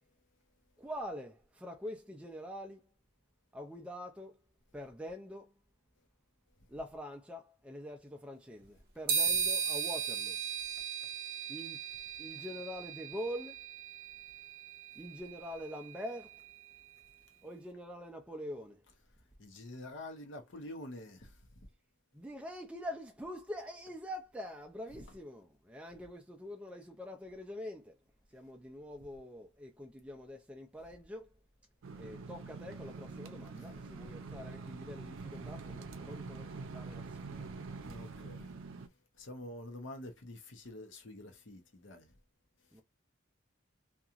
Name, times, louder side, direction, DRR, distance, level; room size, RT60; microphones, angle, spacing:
voice 1, 0.8-2.8 3.5-4.4 4.7-5.5 6.7-10.4 11.5-11.8 12.2-13.6 15.0-16.4 17.4-18.8 22.1-28.0 28.3-31.3 32.0-36.4 36.7-37.4 42.7-42.8, equal, 5° right, 0.3 m, -45 dB
sound 1, 9.1-16.7, right 6 dB, 50° right, 0.8 m, -37 dB
voice 2, 19.4-21.3 37.9-38.5 39.2-42.1, left 1 dB, 70° left, 0.8 m, -47 dB
sound 2, 31.8-38.9, right 4 dB, 90° right, 0.5 m, -45 dB
2.8 x 2.3 x 2.4 m
head